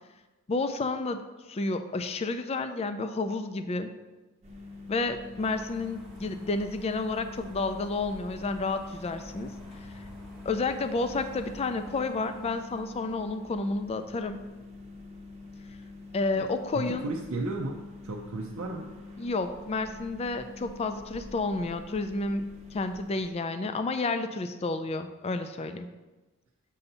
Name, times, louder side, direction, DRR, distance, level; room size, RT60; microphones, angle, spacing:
voice 1, 0.5-1.2 1.5-3.9 4.9-9.5 9.8-10.0 10.4-14.4 16.1-17.1 19.2-22.5 22.7-25.9, left 3 dB, 30° left, 8 dB, 0.3 m, -30 dB
sound 1, 4.4-23.3, left 3 dB, 30° right, 0.8 m, -45 dB
sound 2, 5.4-13.4, right 1 dB, ahead, 1.0 m, -51 dB
voice 2, 16.7-17.8 18.0-18.9, right 2 dB, 70° right, 0 dB, 0.5 m, -34 dB
6.9 x 2.7 x 5.4 m, 1.2 s
head